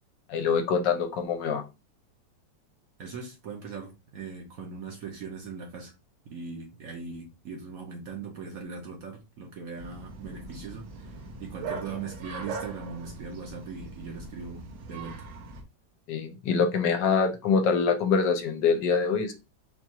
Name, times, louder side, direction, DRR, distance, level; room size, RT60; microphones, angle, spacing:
voice 1, 0.3-1.6 16.1-19.3, left 5 dB, 75° left, 1.3 m, -25 dB
voice 2, 3.0-5.9 6.3-15.3, right 5 dB, 60° right, 1.0 m, -40 dB
Bark, 9.8-15.6, right 4 dB, 85° right, 1.5 m, -41 dB
4.4 x 2.4 x 2.7 m
omnidirectional pair, 2.0 m